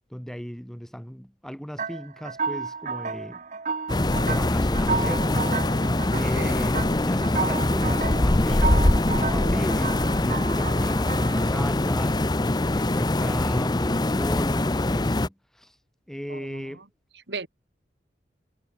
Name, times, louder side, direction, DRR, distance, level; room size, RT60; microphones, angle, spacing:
voice 1, 0.1-3.4 4.2-5.8 6.1-15.8 16.1-16.8, equal, 5° left, 1.3 m, -36 dB
sound 1, 1.8-11.7, right 5 dB, 45° right, 1.0 m, -32 dB
sound 2, 3.9-15.3, left 2 dB, 25° left, 0.7 m, -23 dB
voice 2, 6.1-6.7 16.3-16.8 17.3-17.5, right 4 dB, 70° right, 1.8 m, -37 dB
head